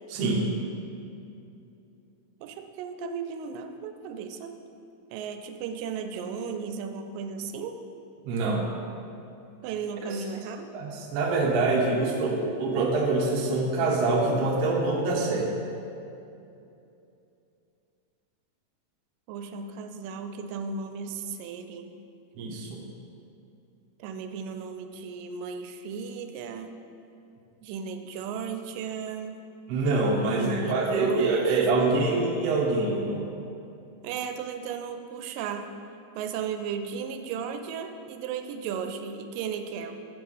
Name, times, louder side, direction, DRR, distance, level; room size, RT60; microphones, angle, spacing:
voice 1, 0.1-0.5 8.2-8.6 10.1-10.2 10.7-15.5 22.4-22.8 29.7-33.3, right 3 dB, 65° right, -1 dB, 1.6 m, -25 dB
voice 2, 2.4-4.6 5.1-7.8 9.6-10.7 19.3-21.9 24.0-26.7 27.6-29.4 30.3-32.3 34.0-35.7 36.2-40.1, right 6 dB, 90° right, 7 dB, 2.2 m, -35 dB
7.7 x 4.9 x 5.4 m, 2.7 s
omnidirectional pair, 3.8 m